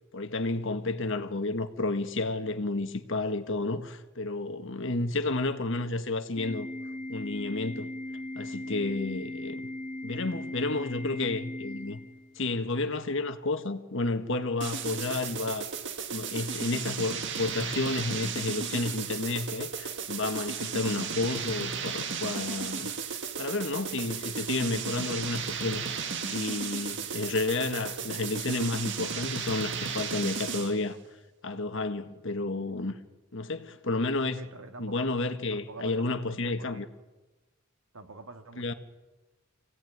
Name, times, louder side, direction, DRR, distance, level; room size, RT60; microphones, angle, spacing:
voice 1, 0.1-6.7 7.1-7.9 8.3-9.6 10.0-12.0 12.3-15.7 16.1-22.9 23.4-31.0 31.4-33.0 33.3-34.4 34.8-36.9 38.6-38.7, left 2 dB, 60° left, 1.6 m, -31 dB
Organ, 6.4-12.4, left 1 dB, 40° left, 2.1 m, -38 dB
sound 1, 14.6-30.8, right 6 dB, 60° right, 2.1 m, -34 dB
voice 2, 34.3-35.1 35.5-36.9 37.9-38.7, right 3 dB, 75° right, 2.2 m, -46 dB
26.5 x 17.5 x 9.5 m
head